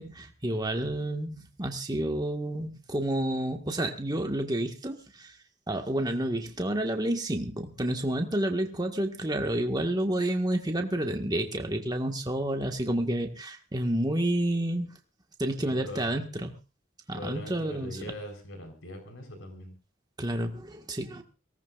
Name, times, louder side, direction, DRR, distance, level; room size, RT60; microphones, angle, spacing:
voice 1, 0.0-5.3 5.7-14.9 15.4-16.6 17.1-18.1 20.2-21.2, right 1 dB, 20° right, 4 dB, 1.7 m, -30 dB
voice 2, 15.6-16.2 17.1-19.7, left 1 dB, 85° left, 4 dB, 4.4 m, -41 dB
23.0 x 18.0 x 2.6 m, 0.32 s
head